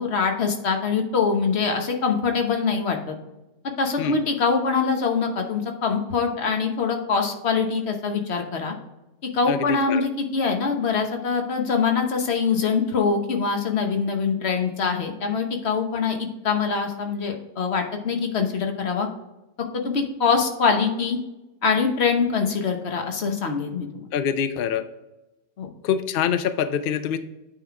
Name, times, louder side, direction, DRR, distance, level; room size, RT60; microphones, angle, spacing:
voice 1, 0.0-3.2 3.8-8.7 9.2-19.1 19.8-21.2 21.6-24.0 25.6-25.7, left 5 dB, 50° left, 4 dB, 1.2 m, -24 dB
voice 2, 24.1-24.8 25.8-27.2, left 8 dB, 90° left, 11 dB, 0.4 m, -24 dB
9.0 x 3.8 x 4.8 m, 0.98 s
omnidirectional pair, 1.6 m